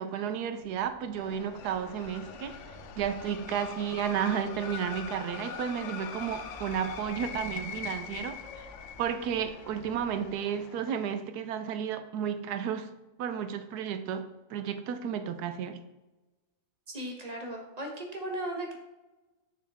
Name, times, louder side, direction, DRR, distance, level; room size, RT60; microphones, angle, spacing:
voice 1, 0.0-2.6 2.9-8.7 9.0-12.9 13.2-15.8, right 8 dB, 85° right, 9 dB, 1.2 m, -32 dB
sound 1, 0.6-10.3, equal, 30° left, 2.9 m, -54 dB
sound 2, 1.2-11.1, left 7 dB, 65° left, 0.8 m, -42 dB
voice 2, 16.9-18.7, right 1 dB, 30° right, 2 dB, 1.0 m, -36 dB
6.6 x 6.4 x 3.5 m, 1.1 s
omnidirectional pair, 1.7 m